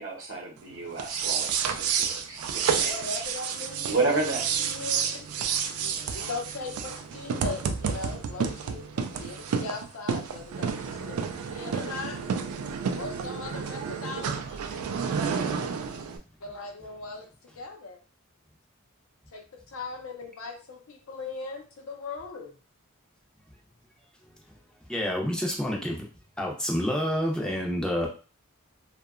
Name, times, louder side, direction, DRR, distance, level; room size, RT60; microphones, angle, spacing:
voice 1, 0.0-3.0 3.9-4.4, right 3 dB, 65° right, -1 dB, 0.8 m, -31 dB
sound 1, 0.9-16.2, right 6 dB, 85° right, 0.3 m, -30 dB
voice 2, 2.8-4.2 4.6-5.3 5.8-12.2 12.9-14.7 16.4-17.3 17.6-18.0 19.3-22.6, left 3 dB, 70° left, 3 dB, 0.6 m, -39 dB
voice 3, 24.9-26.0 26.4-28.1, equal, 5° left, -1 dB, 0.5 m, -28 dB
2.7 x 2.2 x 2.4 m, 0.36 s
head